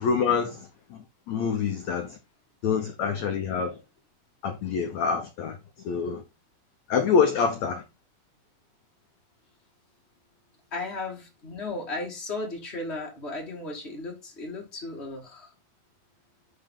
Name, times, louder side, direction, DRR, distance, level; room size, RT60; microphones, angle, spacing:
voice 1, 0.0-2.2 2.6-3.8 4.4-5.6 5.8-6.2 6.9-7.8, left 6 dB, 85° left, 1.5 m, -26 dB
voice 2, 10.7-15.5, left 2 dB, 45° left, 0.8 m, -35 dB
10.5 x 4.1 x 3.7 m
omnidirectional pair, 4.6 m